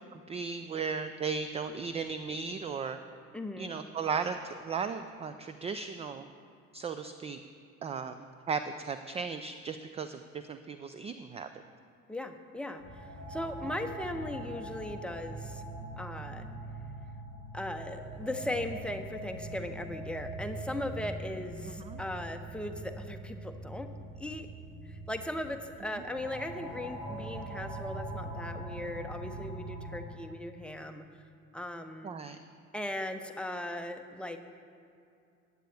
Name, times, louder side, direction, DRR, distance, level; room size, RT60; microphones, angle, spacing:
voice 1, 0.1-3.0 3.6-6.3 6.7-7.4 7.8-8.2 8.5-11.5 21.6-22.0 32.0-32.4, right 5 dB, 15° right, 10 dB, 0.3 m, -36 dB
voice 2, 3.3-3.7 12.1-15.6 16.0-16.5 17.5-23.9 24.2-24.5 24.9-31.1 31.5-32.1 32.7-34.4, left 1 dB, 5° left, 6 dB, 0.8 m, -38 dB
sound 1, 12.8-30.0, right 1 dB, 40° right, 2.7 m, -42 dB
15.0 x 9.5 x 3.4 m, 2.5 s
figure-of-eight pair, 55°, 41 cm